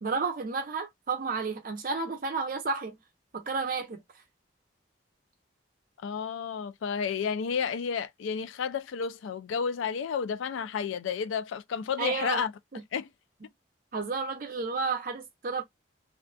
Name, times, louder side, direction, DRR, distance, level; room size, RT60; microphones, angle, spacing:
voice 1, 0.0-3.0 3.3-4.0 12.0-12.4 12.7-12.8 13.9-15.6, right 4 dB, 45° right, 0.5 m, -31 dB
voice 2, 6.0-12.5 12.9-13.1, left 6 dB, 90° left, 0.3 m, -31 dB
2.5 x 2.4 x 2.2 m
head